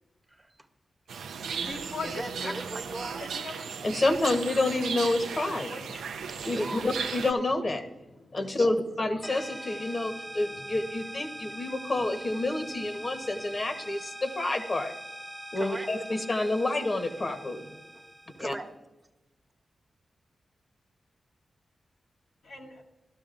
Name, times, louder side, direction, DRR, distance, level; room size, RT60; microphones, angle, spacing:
voice 1, 0.3-0.7 2.0-3.2 6.0-6.9 8.5-8.7 15.6-15.9 18.4-18.7, right 1 dB, 25° right, 6 dB, 1.0 m, -39 dB
sound 1, 1.1-7.3, right 6 dB, 90° right, 0.4 m, -36 dB
voice 2, 1.6-2.5 3.2-3.7 5.7-6.0 8.2-8.4 22.4-22.8, left 3 dB, 80° left, -1 dB, 1.3 m, -39 dB
voice 3, 3.8-5.7 6.4-7.8 8.3-14.9 15.5-17.8 18.4-18.5, left 2 dB, 50° left, 7 dB, 1.1 m, -28 dB
sound 2, 9.2-18.6, right 1 dB, ahead, 0.7 m, -42 dB
13.5 x 12.5 x 2.5 m, 1.1 s
supercardioid pair, 40°, 0 cm